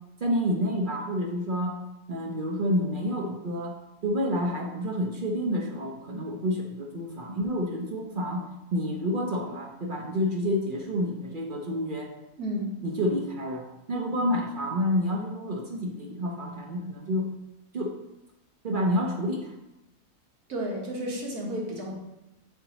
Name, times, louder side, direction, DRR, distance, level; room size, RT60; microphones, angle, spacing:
voice 1, 0.2-1.8 2.1-3.8 4.0-8.4 8.7-12.1 12.8-17.3 17.7-18.0 18.6-19.5, equal, 50° right, 1 dB, 0.6 m, -29 dB
voice 2, 12.4-12.7 20.5-22.0, equal, 85° right, -2 dB, 1.7 m, -32 dB
7.3 x 4.4 x 2.9 m, 0.96 s
omnidirectional pair, 1.5 m